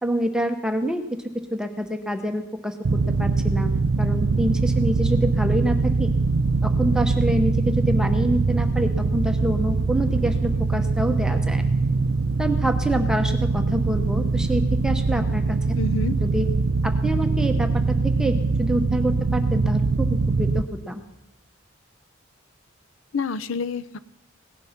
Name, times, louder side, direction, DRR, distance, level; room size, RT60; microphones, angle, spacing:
voice 1, 0.0-1.0 1.5-3.7 4.0-6.1 6.6-11.6 12.4-15.6 16.2-16.5 16.8-21.0, right 1 dB, 5° right, 6 dB, 0.8 m, -26 dB
sound 1, 2.8-20.6, right 3 dB, 65° right, 0.5 m, -22 dB
voice 2, 15.8-16.1 23.1-24.0, left 4 dB, 75° left, 15 dB, 0.6 m, -28 dB
17.5 x 10.5 x 5.8 m, 0.92 s
head